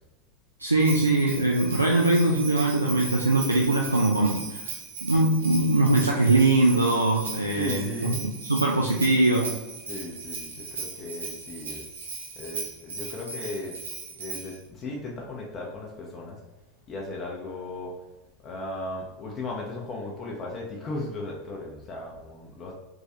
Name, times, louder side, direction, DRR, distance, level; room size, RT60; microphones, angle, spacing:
voice 1, 0.6-4.6 5.0-9.6, right 2 dB, 85° right, 0 dB, 0.4 m, -22 dB
Bell, 0.8-14.6, right 4 dB, 70° right, 0.8 m, -38 dB
voice 2, 7.5-8.4 9.9-11.8 12.4-13.8 14.2-16.4 16.9-17.9 18.4-22.8, left 2 dB, 30° left, -1 dB, 0.7 m, -36 dB
3.6 x 3.0 x 2.8 m, 1.1 s
figure-of-eight pair, 85°, 0 cm